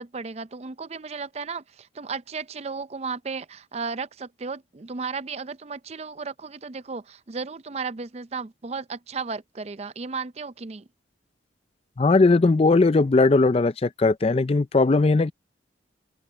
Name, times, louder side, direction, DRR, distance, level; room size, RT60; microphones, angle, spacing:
voice 1, 0.0-10.9, right 4 dB, 35° right, 0.5 m, -34 dB
voice 2, 12.0-15.3, left 3 dB, 30° left, 0.4 m, -19 dB
open air
head